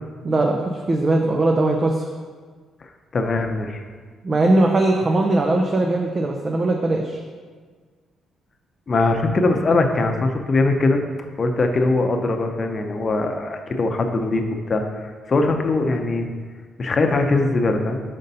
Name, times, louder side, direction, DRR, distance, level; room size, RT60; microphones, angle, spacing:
voice 1, 0.2-2.1 4.2-7.2, right 2 dB, 35° right, 1 dB, 0.5 m, -20 dB
voice 2, 3.1-3.8 8.9-11.0 11.4-16.3 16.8-18.0, left 3 dB, 40° left, 4 dB, 0.7 m, -21 dB
5.2 x 4.0 x 5.4 m, 1.5 s
cardioid pair, 90°, 0 cm